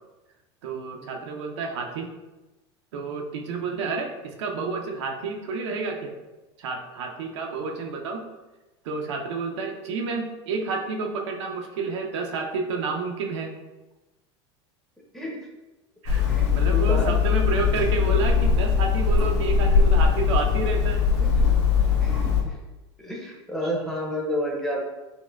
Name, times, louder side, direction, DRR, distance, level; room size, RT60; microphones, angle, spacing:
voice 1, 0.6-2.1 2.9-6.1 6.6-8.2 8.8-13.5 16.0-16.3 16.5-21.0, right 4 dB, 80° right, 2 dB, 0.5 m, -30 dB
Hammer, 16.1-22.4, left 6 dB, 80° left, 0.9 m, -21 dB
voice 2, 16.1-17.1 18.1-18.3 21.2-21.5 22.0-22.6 23.0-24.8, equal, ahead, -2 dB, 0.6 m, -31 dB
4.2 x 2.1 x 2.3 m, 1.1 s
hypercardioid pair, 100°, 15 cm